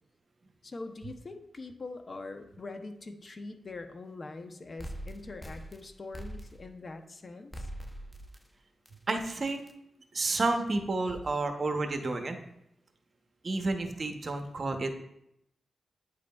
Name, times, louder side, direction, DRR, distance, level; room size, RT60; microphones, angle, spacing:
voice 1, 0.6-7.7, left 3 dB, 50° left, 7 dB, 0.7 m, -43 dB
sound 1, 4.8-6.9 7.5-8.5 8.9-9.0 9.5-9.7, equal, 10° left, 0.8 m, -43 dB
voice 2, 9.1-9.6 10.1-12.4 13.4-14.9, right 2 dB, 50° right, 5 dB, 0.9 m, -30 dB
9.2 x 5.0 x 2.4 m, 0.79 s
cardioid pair, 50°, 0 cm